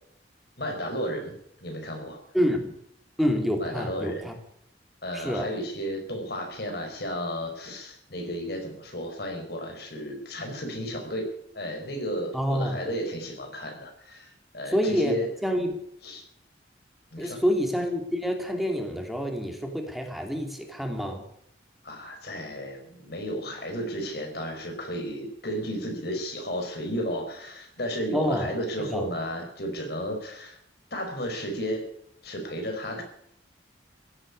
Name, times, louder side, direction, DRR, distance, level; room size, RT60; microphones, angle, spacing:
voice 1, 0.6-2.2 3.6-4.3 5.0-15.3 15.6-15.7 16.0-16.2 17.1-17.4 21.8-30.6 30.9-31.9 32.2-33.0, equal, 60° left, 4 dB, 4.8 m, -33 dB
voice 2, 2.3-2.7 3.2-4.3 5.1-5.5 12.3-12.8 14.7-15.8 17.2-21.2 28.1-28.5 28.9-29.1, equal, ahead, 3 dB, 2.7 m, -27 dB
16.5 x 8.9 x 9.9 m, 0.72 s
head